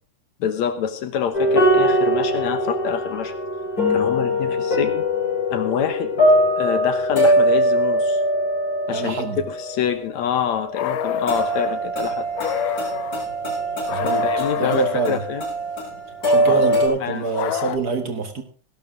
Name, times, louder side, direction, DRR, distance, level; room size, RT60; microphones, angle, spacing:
voice 1, 0.4-3.3 3.9-5.1 5.5-6.2 6.6-8.2 8.9-9.2 9.5-12.3 14.0-15.4 16.5-16.7 17.0-17.3, left 8 dB, 65° left, 11 dB, 2.2 m, -26 dB
sound 1, 1.3-16.9, equal, 25° left, 5.9 m, -22 dB
voice 2, 8.9-9.4 13.9-15.2 16.3-18.4, right 5 dB, 50° right, 7 dB, 1.2 m, -26 dB
sound 2, 10.8-11.7 12.3-13.2 13.9-15.1 16.2-17.8, left 10 dB, 90° left, 2.5 m, -28 dB
18.5 x 12.0 x 3.7 m, 0.37 s
omnidirectional pair, 3.7 m